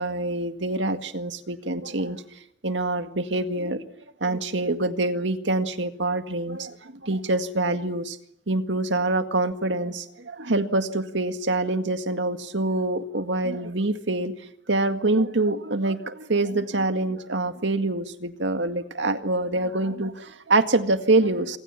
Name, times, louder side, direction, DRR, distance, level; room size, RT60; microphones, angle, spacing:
voice 1, 0.0-2.2 2.6-3.8 4.2-8.2 8.5-14.3 14.7-21.6, right 2 dB, 75° right, 8 dB, 2.0 m, -25 dB
26.5 x 25.5 x 7.4 m, 0.78 s
head